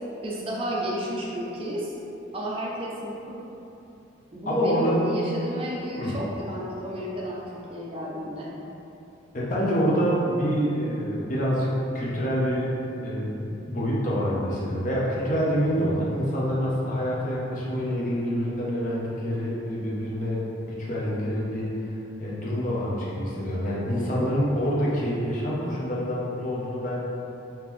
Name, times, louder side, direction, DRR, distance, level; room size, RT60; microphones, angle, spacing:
voice 1, 0.2-1.9 2.3-3.4 4.3-8.5, equal, 30° right, -4 dB, 0.4 m, -32 dB
voice 2, 4.5-5.1 6.0-6.2 9.3-12.7 13.0-21.9 22.2-27.0, equal, 40° left, -6 dB, 0.6 m, -26 dB
3.6 x 2.8 x 3.0 m, 3.0 s
head